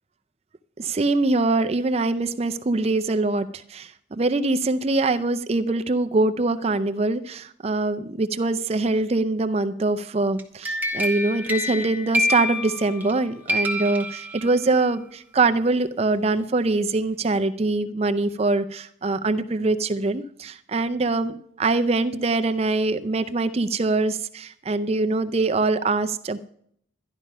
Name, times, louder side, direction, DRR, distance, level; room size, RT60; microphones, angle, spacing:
voice 1, 0.8-26.4, right 3 dB, 30° right, 9 dB, 0.4 m, -23 dB
sound 1, 10.4-13.2 13.5-14.8, left 1 dB, 10° right, 1.0 m, -27 dB
12.5 x 11.0 x 5.5 m, 0.67 s
head